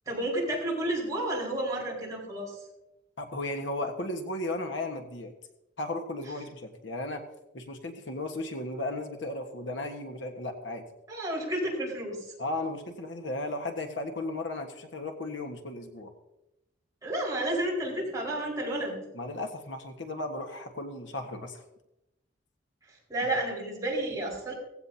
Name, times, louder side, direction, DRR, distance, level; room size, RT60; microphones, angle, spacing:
voice 1, 0.1-2.6 11.1-12.3 17.0-19.0 23.1-24.5, right 1 dB, 20° right, -4 dB, 5.1 m, -31 dB
voice 2, 3.2-5.3 5.8-7.2 7.5-10.8 12.4-16.1 19.1-21.6, left 2 dB, 75° left, 5 dB, 1.5 m, -35 dB
17.5 x 15.5 x 2.8 m, 0.91 s
head